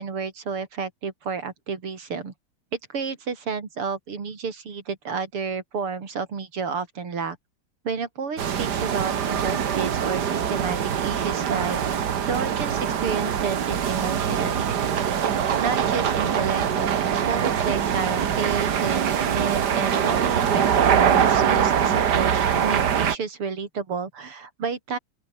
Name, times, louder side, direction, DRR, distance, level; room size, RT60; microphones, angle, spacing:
voice 1, 0.0-2.3 2.9-7.4 7.8-11.8 12.3-14.8 15.6-25.0, right 5 dB, 90° right, 4.1 m, -31 dB
sound 1, 8.4-23.1, right 8 dB, 55° right, 1.8 m, -23 dB
open air
omnidirectional pair, 2.4 m